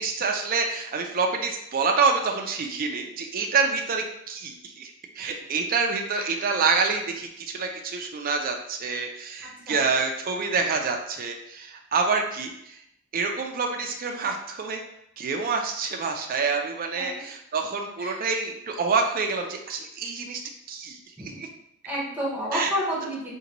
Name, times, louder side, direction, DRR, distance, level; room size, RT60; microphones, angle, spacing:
voice 1, 0.0-12.8 13.1-14.8 15.2-20.4 20.7-21.0 21.4-21.5 22.5-22.7, right 4 dB, 40° right, 3 dB, 0.4 m, -27 dB
voice 2, 9.4-9.8 17.0-17.2 18.0-18.2 21.2-21.4 21.8-23.3, equal, 10° right, -6 dB, 0.9 m, -31 dB
3.8 x 2.2 x 2.9 m, 0.76 s
head